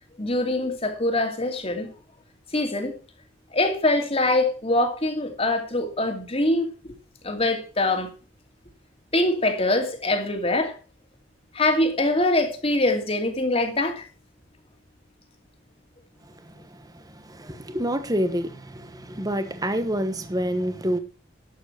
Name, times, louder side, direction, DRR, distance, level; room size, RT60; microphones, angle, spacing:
voice 1, 0.2-1.9 2.5-2.9 3.5-6.9 7.2-8.1 9.1-10.7 11.5-14.1, left 2 dB, 30° left, 2.6 m, -23 dB
voice 2, 16.2-21.0, equal, 20° right, 1.2 m, -28 dB
12.0 x 8.0 x 5.8 m
head